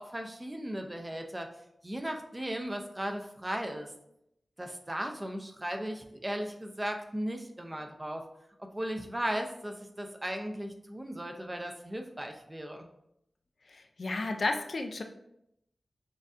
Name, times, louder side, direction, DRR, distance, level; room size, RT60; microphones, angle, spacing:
voice 1, 0.0-1.5 1.8-3.9 4.6-8.2 8.6-12.9, right 1 dB, 20° right, 4 dB, 0.5 m, -36 dB
voice 2, 13.7-15.0, left 3 dB, 60° left, 5 dB, 0.4 m, -32 dB
6.3 x 2.6 x 2.4 m, 0.78 s
wide cardioid pair, 105°, 0 cm